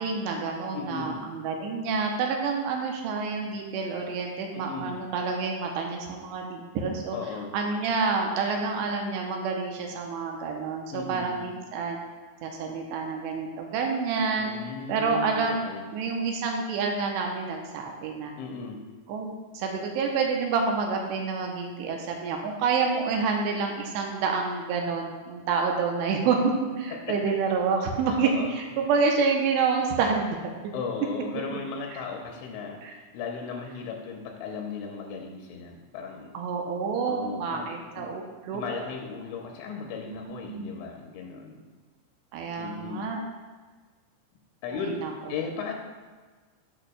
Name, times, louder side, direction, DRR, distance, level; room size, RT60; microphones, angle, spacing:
voice 1, 0.0-7.2 7.5-12.0 12.4-14.5 14.9-15.6 15.9-18.3 19.1-30.7 31.9-32.0 32.8-32.9 36.3-38.8 40.1-40.7 42.3-43.2 44.8-45.1, right 5 dB, 80° right, 1 dB, 2.6 m, -28 dB
voice 2, 0.7-1.3 4.5-5.0 7.1-7.5 10.9-11.6 14.3-15.9 18.4-18.8 26.9-27.2 28.1-28.5 30.7-36.4 37.0-37.7 38.0-38.1 38.5-41.6 42.6-43.1 44.6-45.7, left 5 dB, 85° left, 1 dB, 2.9 m, -36 dB
11.0 x 6.4 x 2.2 m, 1.4 s
omnidirectional pair, 5.3 m